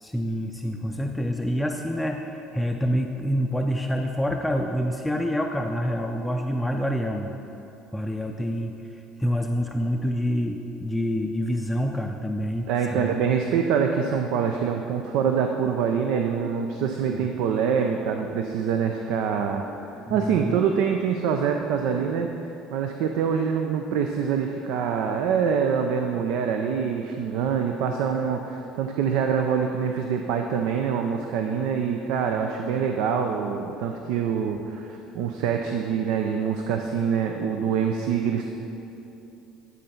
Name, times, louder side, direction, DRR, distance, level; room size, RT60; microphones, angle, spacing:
voice 1, 0.0-7.3 7.9-13.1 16.1-16.5 17.1-17.3 20.1-20.6 32.3-32.5, equal, 5° left, 3 dB, 0.4 m, -27 dB
voice 2, 12.7-38.5, right 7 dB, 75° right, 4 dB, 0.4 m, -25 dB
9.9 x 4.0 x 5.7 m, 2.9 s
supercardioid pair, 80°, 0 cm